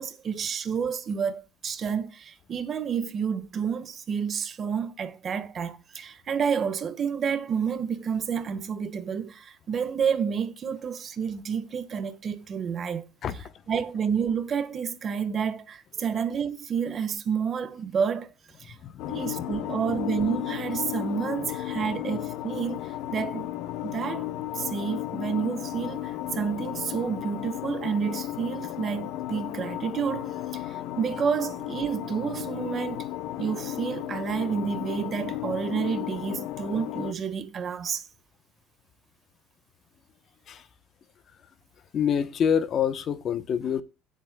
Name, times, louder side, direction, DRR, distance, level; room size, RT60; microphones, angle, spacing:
voice 1, 0.0-13.0 13.7-18.3 18.6-18.8 19.1-23.5 23.8-33.1 33.4-38.1, right 7 dB, 35° right, 1.4 m, -30 dB
voice 2, 18.8-19.2 19.6-19.7 40.5-40.7 41.9-43.8, left 8 dB, 40° left, 0.8 m, -26 dB
sound 1, 19.0-37.1, left 14 dB, 70° left, 0.8 m, -34 dB
17.0 x 7.7 x 2.2 m
cardioid pair, 130°, 0 cm